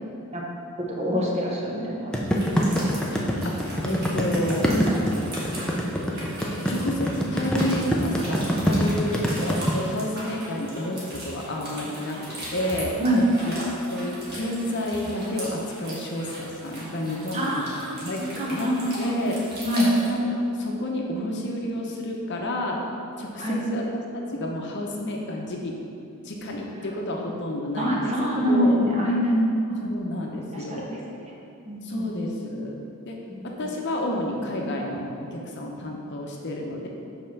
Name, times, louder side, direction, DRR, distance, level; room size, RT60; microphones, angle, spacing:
voice 1, 1.0-2.8 4.7-4.9 13.0-13.2 17.3-17.9 18.4-19.3 19.6-19.9 23.4-23.6 27.8-29.9 30.5-31.0 31.7-32.3, equal, 30° right, -3 dB, 1.0 m, -25 dB
sound 1, 2.1-9.7, equal, 5° left, 0.5 m, -24 dB
sound 2, 2.3-20.1, equal, 45° right, 1.6 m, -38 dB
voice 2, 3.4-4.7 6.7-13.0 13.4-13.5 13.9-17.6 18.0-19.4 20.0-22.8 23.2-25.8 26.2-28.1 28.5-28.8 29.8-30.9 31.8-32.7 33.1-33.2 33.4-36.9, left 1 dB, 50° left, 0 dB, 0.8 m, -30 dB
5.4 x 4.4 x 5.8 m, 2.6 s
head